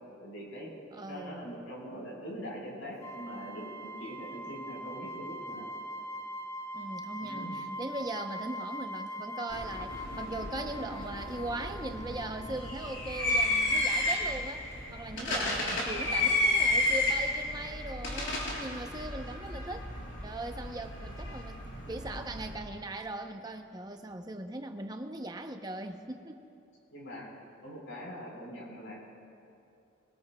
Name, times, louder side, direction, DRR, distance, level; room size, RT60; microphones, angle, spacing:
voice 1, 0.2-0.7 1.1-5.7 7.2-7.6 15.1-15.5 26.9-27.3 27.6-29.0, equal, 80° left, -3 dB, 4.3 m, -43 dB
voice 2, 0.9-1.5 6.7-14.6 14.9-19.9 20.2-21.6 21.9-26.5, right 2 dB, 20° right, 5 dB, 0.7 m, -39 dB
sound 1, 3.0-14.4, equal, 15° left, 0.4 m, -42 dB
sound 2, 9.5-22.5, left 2 dB, 65° left, 4.1 m, -32 dB
23.0 x 20.0 x 2.3 m, 2.7 s
head